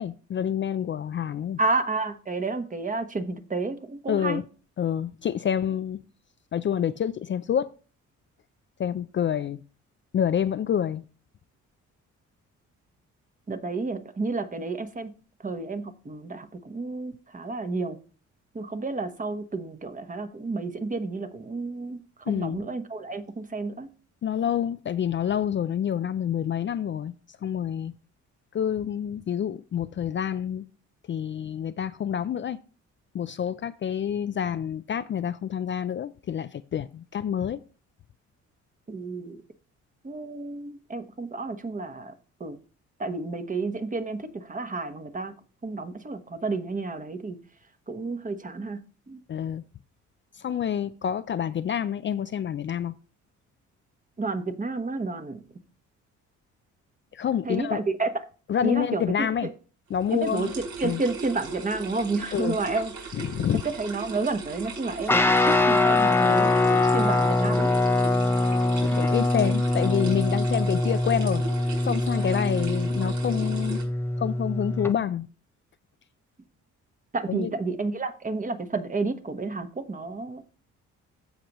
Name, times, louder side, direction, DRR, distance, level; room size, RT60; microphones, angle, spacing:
voice 1, 0.0-1.6 4.1-4.4 4.8-6.0 6.5-7.7 8.8-9.6 10.1-11.0 22.3-22.7 24.2-27.1 27.4-27.9 28.5-30.6 31.1-32.6 33.1-37.6 49.3-49.6 50.3-52.9 57.1-57.8 58.5-59.5 59.9-60.5 60.8-61.0 62.3-62.6 63.1-63.6 68.8-71.4 71.9-73.8 74.2-75.3 77.3-77.5, left 9 dB, 40° left, 0.4 m, -28 dB
voice 2, 1.6-4.4 13.5-15.1 15.4-18.0 18.5-23.9 38.9-39.4 40.0-42.1 42.4-42.6 43.0-45.3 45.6-47.4 47.9-48.8 49.1-49.2 54.2-55.4 57.4-58.1 58.6-59.5 60.1-62.9 63.6-65.2 65.4-67.7 77.1-80.5, right 3 dB, 25° right, 1.2 m, -31 dB
sound 1, 60.0-73.8, right 4 dB, 75° right, 4.2 m, -38 dB
Guitar, 65.1-74.9, left 2 dB, 10° left, 0.7 m, -23 dB
15.0 x 5.1 x 3.0 m
cardioid pair, 90°, 30 cm